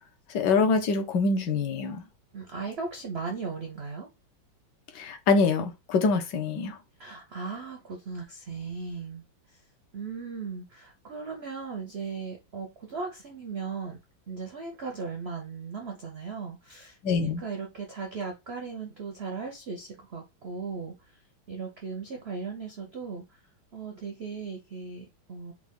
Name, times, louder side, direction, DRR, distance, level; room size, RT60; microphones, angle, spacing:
voice 1, 0.3-2.0 4.9-6.8 17.0-17.4, left 4 dB, 70° left, 1.4 m, -25 dB
voice 2, 2.3-4.1 7.0-9.6 9.9-14.0 14.3-21.2 21.5-23.4 23.7-25.5, right 5 dB, 75° right, 0.6 m, -37 dB
4.8 x 2.3 x 3.5 m
omnidirectional pair, 2.1 m